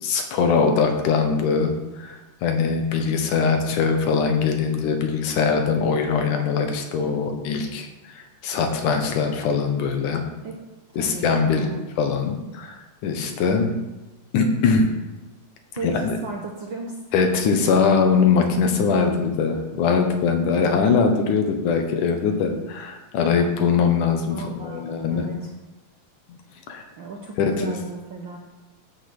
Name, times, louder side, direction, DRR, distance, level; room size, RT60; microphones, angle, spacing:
voice 1, 0.0-7.9 8.1-10.2 11.0-11.7 12.0-13.8 14.3-14.9 15.8-16.2 17.1-25.3 26.3-26.4 26.7-26.8 27.4-27.8, left 5 dB, 85° left, 4 dB, 2.8 m, -22 dB
voice 2, 10.9-11.8 15.7-17.0 24.3-25.5 27.0-28.4, right 4 dB, 60° right, 0 dB, 1.3 m, -35 dB
14.0 x 5.3 x 6.1 m, 1.1 s
omnidirectional pair, 3.5 m